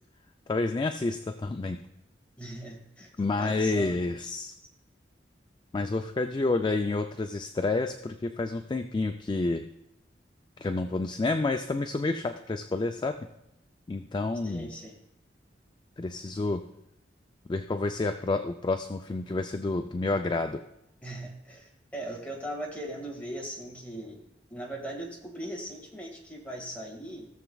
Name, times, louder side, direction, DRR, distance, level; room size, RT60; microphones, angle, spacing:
voice 1, 0.5-1.8 3.2-4.5 5.7-9.6 10.6-13.2 13.9-14.7 16.0-16.6 17.5-20.6, left 3 dB, 25° left, 7 dB, 0.3 m, -29 dB
voice 2, 2.4-3.1 3.4-4.0 14.4-15.0 21.0-24.2 24.5-27.3, right 1 dB, 10° left, -2 dB, 1.8 m, -39 dB
16.5 x 7.1 x 2.3 m, 0.83 s
head